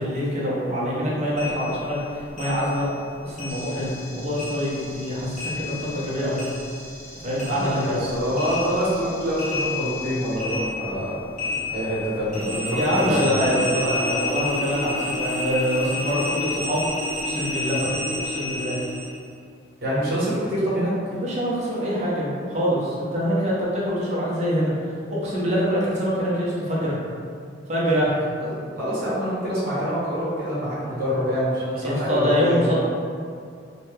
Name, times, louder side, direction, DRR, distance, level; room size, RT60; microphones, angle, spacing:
voice 1, 0.0-2.9 3.2-6.4 7.2-8.1 12.7-16.9 17.2-18.8 21.1-24.7 25.1-27.0 27.7-28.1 31.8-32.8, equal, 40° right, -7 dB, 0.7 m, -25 dB
sound 1, 1.4-4.1 4.3-7.1 7.4-19.2, left 2 dB, 45° left, 0.6 m, -31 dB
sound 2, 3.5-10.3, equal, 5° left, 1.1 m, -44 dB
voice 2, 7.4-11.2 11.7-13.5 19.8-20.9 28.4-32.6, equal, 60° right, -8 dB, 1.0 m, -26 dB
2.8 x 2.2 x 3.2 m, 2.3 s
head